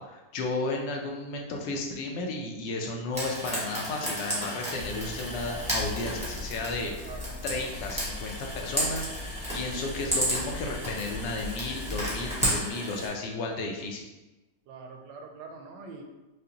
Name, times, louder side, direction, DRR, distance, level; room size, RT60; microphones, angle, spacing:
voice 1, 0.0-14.1, left 2 dB, 85° left, 1 dB, 1.3 m, -33 dB
Frying (food), 3.1-13.1, right 1 dB, 5° right, 1.0 m, -33 dB
sound 1, 4.8-12.6, left 2 dB, 60° left, 0.6 m, -40 dB
voice 2, 7.0-7.4 14.7-16.0, right 4 dB, 90° right, 3 dB, 1.2 m, -44 dB
4.9 x 2.1 x 2.8 m, 1.1 s
omnidirectional pair, 1.9 m